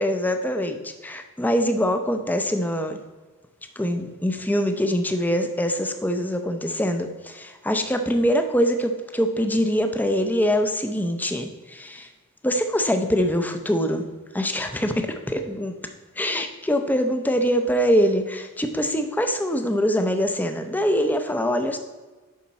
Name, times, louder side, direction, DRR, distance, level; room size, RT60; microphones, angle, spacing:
voice 1, 0.0-3.0 3.8-12.1 12.4-14.0 14.3-15.7 16.2-21.8, equal, 10° left, 7 dB, 0.5 m, -24 dB
9.3 x 5.8 x 4.2 m, 1.3 s
head